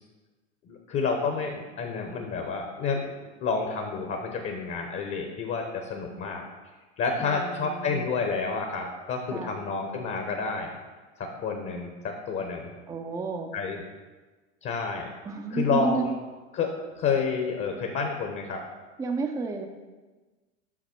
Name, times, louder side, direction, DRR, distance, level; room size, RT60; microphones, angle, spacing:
voice 1, 0.6-3.1 3.4-6.5 7.0-10.7 11.2-12.7 13.5-13.8 14.6-15.1 15.5-16.1 16.5-18.6, left 5 dB, 35° left, 3 dB, 1.0 m, -29 dB
voice 2, 7.2-8.1 9.3-9.6 12.9-13.5 15.2-16.1 19.0-19.7, right 4 dB, 10° right, 4 dB, 0.5 m, -31 dB
6.0 x 5.8 x 4.4 m, 1.3 s
hypercardioid pair, 100°, 36 cm